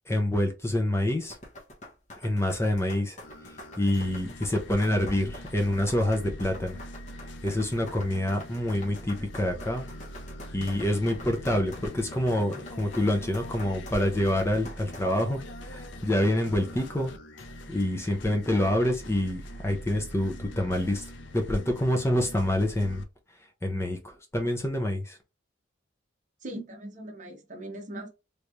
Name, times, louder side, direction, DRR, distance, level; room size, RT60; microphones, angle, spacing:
voice 1, 0.1-1.4 2.2-3.2 3.4-6.8 7.4-9.8 10.5-17.1 17.7-23.0 23.6-25.2, left 1 dB, 15° left, 0.6 m, -27 dB
sound 1, 1.2-15.0, left 1 dB, 35° left, 1.0 m, -46 dB
sound 2, 3.2-23.0, equal, 60° left, 0.6 m, -43 dB
voice 2, 26.4-28.1, right 1 dB, 40° right, 0.9 m, -40 dB
3.3 x 3.1 x 2.5 m
head